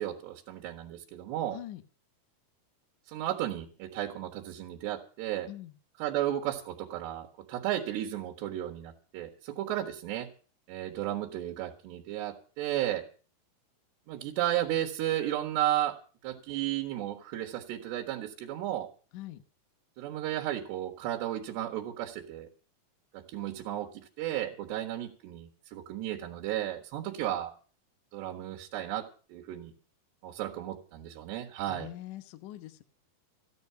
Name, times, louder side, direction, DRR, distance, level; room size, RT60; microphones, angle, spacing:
voice 1, 0.0-1.6 3.1-5.5 6.0-10.3 10.7-13.1 14.1-16.0 16.2-18.9 20.0-22.5 23.1-27.5 28.1-29.7 30.2-31.9, right 13 dB, 85° right, 2 dB, 3.6 m, -34 dB
voice 2, 1.5-1.8 5.5-5.7 19.1-19.4 31.7-32.8, left 14 dB, 65° left, 10 dB, 2.3 m, -43 dB
15.0 x 10.5 x 6.9 m, 0.40 s
omnidirectional pair, 4.8 m